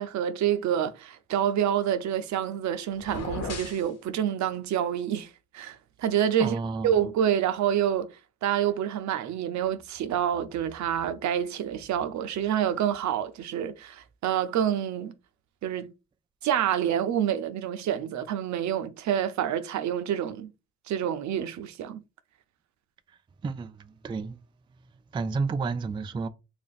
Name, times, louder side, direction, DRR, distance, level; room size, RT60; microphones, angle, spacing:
voice 1, 0.0-6.6 6.8-8.1 8.4-15.1 15.6-15.9 16.4-20.5 20.9-22.0, right 9 dB, 70° right, 0.6 m, -27 dB
sound 1, 3.0-3.9, left 4 dB, 55° left, 1.1 m, -36 dB
voice 2, 6.4-7.0 23.4-24.4 25.1-26.3, right 4 dB, 15° right, 0.3 m, -31 dB
2.9 x 2.6 x 4.0 m
cardioid pair, 90°, 30 cm